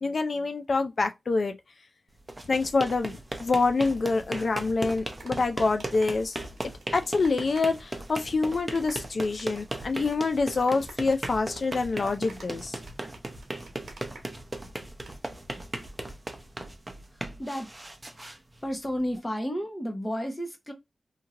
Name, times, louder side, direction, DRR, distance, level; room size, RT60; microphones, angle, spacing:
voice 1, 0.0-1.5 2.5-6.4 6.9-12.8, left 3 dB, 60° left, 0.4 m, -26 dB
sound 1, 2.2-19.1, right 1 dB, 20° right, 0.7 m, -38 dB
sound 2, 5.1-8.3 8.6-14.6 14.9-15.1, right 3 dB, 85° right, 1.0 m, -48 dB
voice 2, 17.1-17.7 18.6-20.7, equal, 20° left, 1.0 m, -32 dB
2.9 x 2.8 x 2.4 m
cardioid pair, 55°, 0 cm